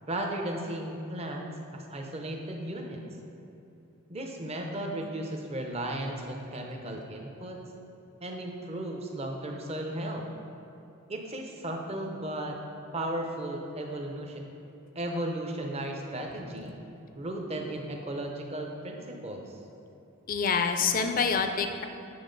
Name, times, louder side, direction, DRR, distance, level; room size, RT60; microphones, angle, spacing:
voice 1, 0.1-3.0 4.1-7.6 8.2-10.3 11.1-12.6 12.9-14.4 14.9-16.7 17.1-19.6, right 1 dB, 30° right, 2 dB, 0.7 m, -35 dB
voice 2, 20.3-21.8, left 5 dB, 40° left, 7 dB, 0.4 m, -26 dB
8.5 x 5.8 x 3.9 m, 2.8 s
head